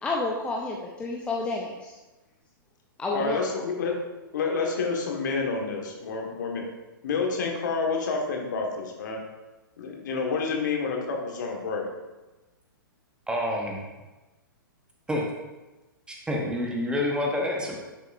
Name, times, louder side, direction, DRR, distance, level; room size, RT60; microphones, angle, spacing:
voice 1, 0.0-2.0 3.0-3.4, left 3 dB, 10° left, -2 dB, 0.7 m, -30 dB
voice 2, 3.1-4.0 4.3-6.6 7.0-9.2 9.8-11.9, left 4 dB, 55° left, 1 dB, 1.7 m, -29 dB
voice 3, 13.3-13.8 15.1-15.2 16.1-17.8, left 1 dB, 5° right, -1 dB, 1.1 m, -28 dB
10.5 x 6.5 x 2.7 m, 1.1 s
figure-of-eight pair, 115°, 12 cm